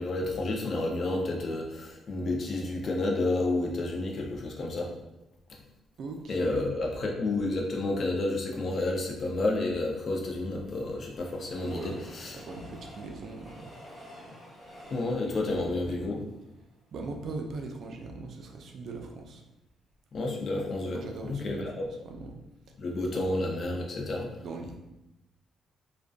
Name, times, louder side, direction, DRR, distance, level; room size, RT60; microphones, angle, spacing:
voice 1, 0.0-4.9 6.3-12.3 14.9-16.2 20.1-21.7 22.8-24.3, left 2 dB, 50° left, 0 dB, 0.5 m, -30 dB
voice 2, 6.0-6.7 11.6-13.9 14.7-14.8 15.0-16.1 16.9-19.4 20.9-22.4 22.7-22.8 23.1-23.3 24.4-24.8, right 3 dB, 65° right, 3 dB, 0.3 m, -41 dB
Train, 10.2-17.1 17.6-17.7 17.9-18.0, equal, 20° left, 1.2 m, -50 dB
2.5 x 2.2 x 2.3 m, 0.93 s
cardioid pair, 90°, 0 cm